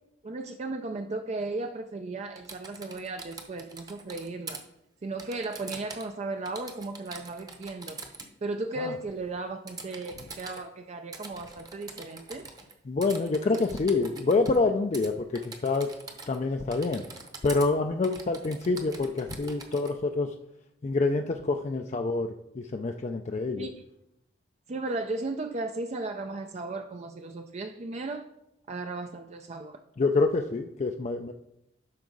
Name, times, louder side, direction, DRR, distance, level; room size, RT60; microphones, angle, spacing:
voice 1, 0.2-4.6 5.0-8.0 8.4-12.5 13.5-13.7 23.6-23.7 24.7-28.3 28.7-29.8, right 2 dB, 40° right, 0.4 m, -35 dB
Typing, 2.4-4.6 5.2-6.2 6.5-8.3 9.7-10.6 11.1-12.7 13.0-14.6 14.9-15.1 15.3-16.4 16.7-17.7 18.0-19.9, right 3 dB, 20° right, 0.9 m, -44 dB
voice 2, 12.9-16.0 16.3-17.1 17.4-20.3 20.8-23.7 30.0-31.3, left 3 dB, 40° left, 0.4 m, -27 dB
12.0 x 4.8 x 3.9 m
head